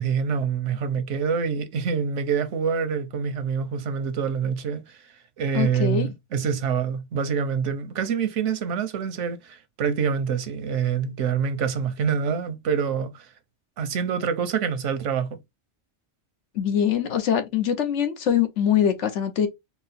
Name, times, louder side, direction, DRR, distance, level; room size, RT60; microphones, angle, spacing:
voice 1, 0.0-5.0 5.4-13.3 13.8-15.3, right 6 dB, 90° right, 1.1 m, -26 dB
voice 2, 5.5-6.1 16.5-19.5, left 9 dB, 85° left, 1.1 m, -23 dB
4.3 x 2.0 x 4.1 m
omnidirectional pair, 1.2 m